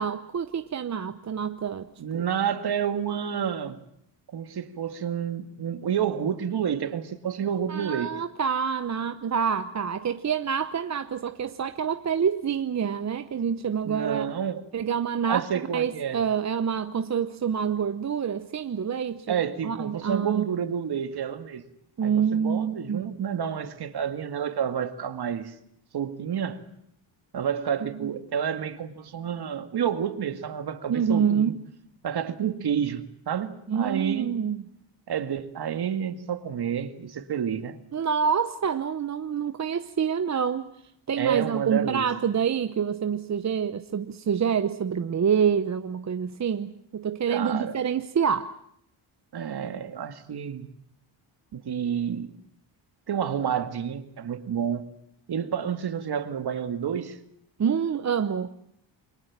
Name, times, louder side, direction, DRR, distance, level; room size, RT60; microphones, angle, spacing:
voice 1, 0.0-1.9 2.1-2.2 7.7-14.3 14.7-15.5 15.7-19.4 19.6-20.4 22.0-23.1 27.8-28.1 30.9-31.6 33.7-34.7 37.9-40.7 41.1-48.6 57.6-58.5, right 7 dB, 35° right, 0.9 m, -27 dB
voice 2, 2.0-3.8 4.3-8.1 13.8-14.6 15.3-16.2 19.3-21.6 22.0-25.6 25.9-26.6 27.3-31.5 32.0-34.3 35.1-37.8 41.2-42.1 47.3-47.7 49.3-50.7 51.5-52.3 53.1-54.9 55.3-57.2, right 8 dB, 55° right, 2.2 m, -29 dB
29.0 x 22.0 x 7.4 m
cardioid pair, 110°, 46 cm